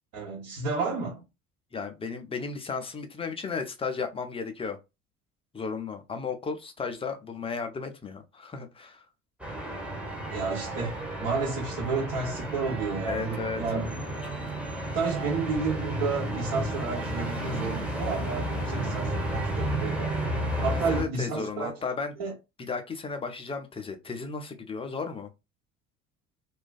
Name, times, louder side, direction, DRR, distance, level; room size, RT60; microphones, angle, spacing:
voice 1, 0.1-1.2 10.3-14.0 14.9-20.1 20.6-21.7 22.2-22.3, right 4 dB, 55° right, 1.1 m, -31 dB
voice 2, 1.7-4.8 5.5-9.0 13.0-13.6 20.7-22.2 22.6-25.3, left 4 dB, 15° left, 0.5 m, -34 dB
sound 1, 9.4-21.0, right 1 dB, 5° right, 0.9 m, -32 dB
2.4 x 2.3 x 2.3 m
figure-of-eight pair, 60°, 40 cm